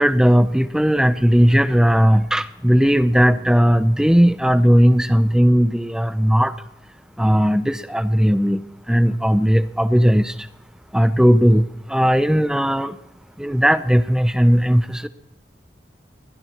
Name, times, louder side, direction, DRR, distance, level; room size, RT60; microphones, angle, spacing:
voice 1, 0.0-6.6 7.2-8.6 8.9-10.3 10.9-13.0 13.4-15.1, equal, 5° right, 12 dB, 0.6 m, -17 dB
23.5 x 17.0 x 3.0 m, 0.90 s
head